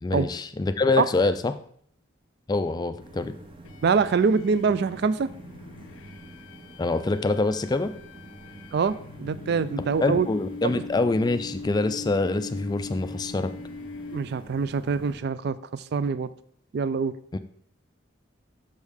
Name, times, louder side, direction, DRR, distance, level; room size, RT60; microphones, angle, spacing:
voice 1, 0.0-1.6 2.5-3.3 6.8-7.9 9.8-13.5 17.3-17.4, left 3 dB, 20° left, 10 dB, 0.3 m, -25 dB
sound 1, 3.0-15.2, right 2 dB, 25° right, 0.7 m, -46 dB
sound 2, 3.6-14.7, left 3 dB, 90° left, 0.4 m, -41 dB
voice 2, 3.8-5.3 8.7-10.3 10.6-10.8 14.1-16.3 16.7-17.1, right 5 dB, 55° right, 15 dB, 0.3 m, -24 dB
6.5 x 6.3 x 3.5 m, 0.63 s
head